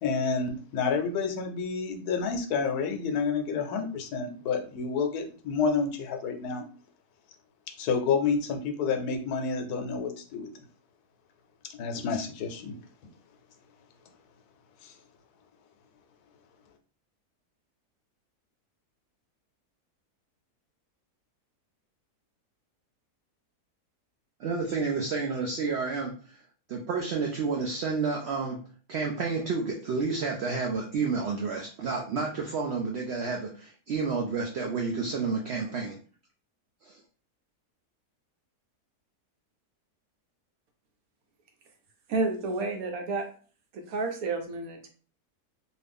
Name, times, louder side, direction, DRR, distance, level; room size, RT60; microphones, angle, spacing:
voice 1, 0.0-6.6 7.8-10.5 11.6-12.8 14.8-14.9, left 5 dB, 80° left, 5 dB, 1.1 m, -29 dB
voice 2, 24.4-26.1 26.7-28.6 28.9-36.0 36.8-37.0, right 4 dB, 90° right, 0 dB, 0.5 m, -30 dB
voice 3, 42.1-43.3 43.7-44.9, right 3 dB, 70° right, 4 dB, 1.1 m, -30 dB
2.7 x 2.5 x 3.4 m, 0.41 s
omnidirectional pair, 1.7 m